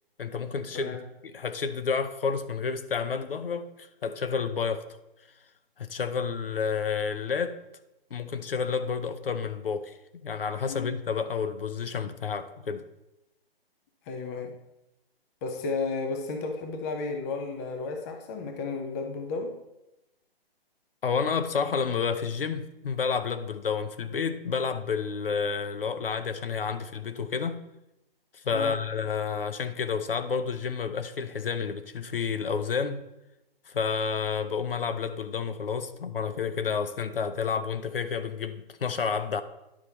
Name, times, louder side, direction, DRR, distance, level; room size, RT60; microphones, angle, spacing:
voice 1, 0.2-1.0 1.2-4.8 5.8-7.6 8.1-9.9 10.2-12.8 21.0-27.6 28.3-33.0 33.7-39.4, left 6 dB, 65° left, 0.8 m, -30 dB
voice 2, 14.1-14.6 15.4-19.6 28.5-28.8, left 4 dB, 15° left, 0.6 m, -33 dB
10.5 x 5.5 x 4.3 m
figure-of-eight pair, 135°, 30 cm